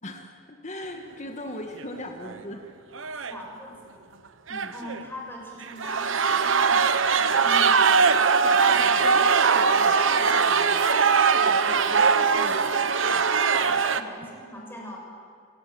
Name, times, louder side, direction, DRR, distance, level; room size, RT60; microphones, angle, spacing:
voice 1, 0.0-2.6 4.5-4.8 8.4-10.9 12.3-12.6, left 2 dB, 40° left, 4 dB, 1.9 m, -38 dB
sound 1, 1.8-2.3 3.0-3.4 4.5-5.0 5.6-14.0, right 5 dB, 90° right, 1.0 m, -21 dB
voice 2, 3.3-4.0 4.7-9.1 11.4-12.0 12.5-15.0, equal, 10° left, -1 dB, 6.5 m, -41 dB
29.0 x 18.0 x 8.9 m, 2.1 s
head